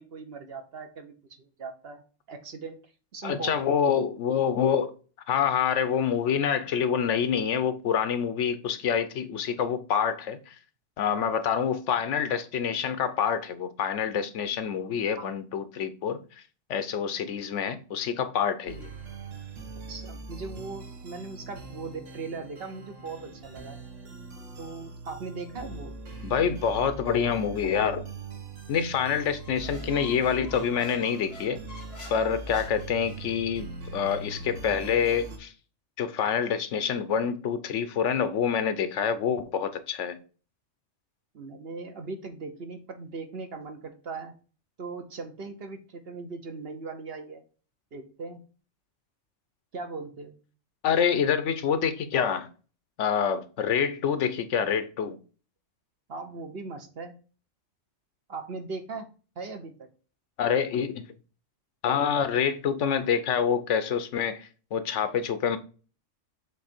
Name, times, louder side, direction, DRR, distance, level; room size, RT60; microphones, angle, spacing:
voice 1, 0.0-2.0 2.3-2.8 3.1-3.6 15.2-15.3 19.9-23.8 24.6-25.9 41.3-44.3 44.8-47.4 47.9-48.4 49.7-50.3 56.1-57.1 58.3-59.1 59.4-59.9, right 4 dB, 55° right, 1.1 m, -39 dB
voice 2, 3.2-4.9 5.3-10.5 11.0-16.2 16.7-18.9 26.2-28.0 28.7-31.6 32.1-33.7 33.9-35.5 36.0-40.2 50.8-52.5 53.0-55.2 60.4-61.1 61.8-65.6, left 7 dB, 75° left, 1.0 m, -26 dB
sound 1, 18.7-35.4, right 3 dB, 80° right, 1.4 m, -41 dB
Squeak, 29.3-33.4, left 1 dB, 55° left, 1.7 m, -48 dB
7.4 x 3.3 x 4.3 m
omnidirectional pair, 1.3 m